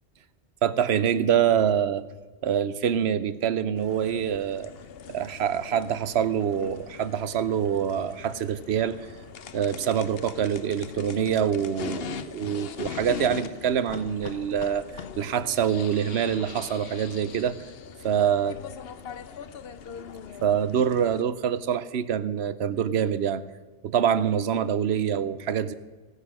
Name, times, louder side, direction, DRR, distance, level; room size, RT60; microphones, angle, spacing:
voice 1, 0.6-2.0 2.4-4.7 5.1-9.0 9.5-17.6 18.0-18.6 20.4-23.4 23.8-25.7, right 8 dB, 75° right, 14 dB, 0.9 m, -25 dB
sound 1, 3.8-21.2, left 7 dB, 65° left, 0.9 m, -41 dB
15.5 x 9.7 x 6.2 m, 1.4 s
omnidirectional pair, 1.1 m